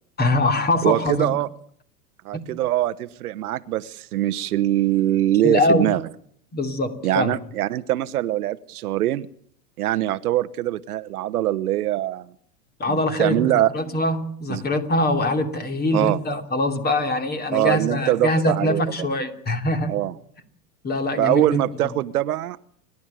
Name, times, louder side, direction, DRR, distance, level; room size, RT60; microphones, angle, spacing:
voice 1, 0.2-1.4 2.3-2.4 5.4-5.9 6.5-7.3 12.8-19.9 20.8-21.9, left 1 dB, 20° left, 8 dB, 3.0 m, -23 dB
voice 2, 0.8-1.5 2.2-6.0 7.0-9.3 9.8-12.3 12.9-13.7 14.5-14.6 15.9-16.2 17.5-18.8 19.9-20.1 21.2-22.6, right 14 dB, 70° right, 12 dB, 1.1 m, -23 dB
30.0 x 12.0 x 9.2 m, 0.63 s
hypercardioid pair, 110°, 46 cm